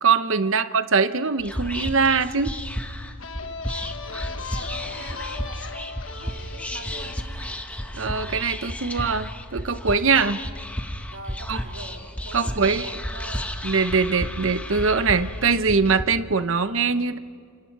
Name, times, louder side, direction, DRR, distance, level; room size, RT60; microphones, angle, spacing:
voice 1, 0.0-2.6 7.9-10.4 11.5-11.6 12.3-12.9 13.6-17.2, right 5 dB, 65° right, 12 dB, 0.9 m, -22 dB
Whispering, 1.4-16.0, equal, 5° left, 1.3 m, -33 dB
sound 1, 3.2-8.6, left 5 dB, 60° left, 1.3 m, -38 dB
voice 2, 3.4-7.7 10.1-10.6 11.1-13.5, right 2 dB, 80° right, 1 dB, 3.5 m, -43 dB
29.0 x 27.0 x 4.8 m, 2.2 s
head